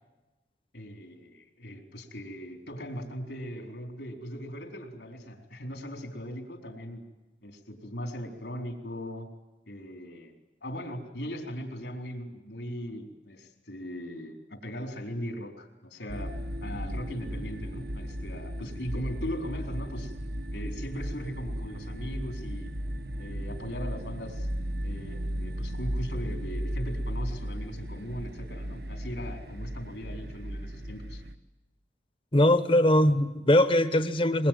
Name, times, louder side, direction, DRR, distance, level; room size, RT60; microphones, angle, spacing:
voice 1, 0.7-7.0 7.4-9.3 9.7-10.3 10.6-20.1 20.5-22.7 23.2-24.5 24.8-31.2, equal, 80° left, 3 dB, 4.2 m, -39 dB
sound 1, 16.1-31.4, equal, 60° right, 1.2 m, -35 dB
voice 2, 32.3-34.5, left 1 dB, 30° left, 11 dB, 1.1 m, -21 dB
23.0 x 22.5 x 9.3 m, 1.1 s
head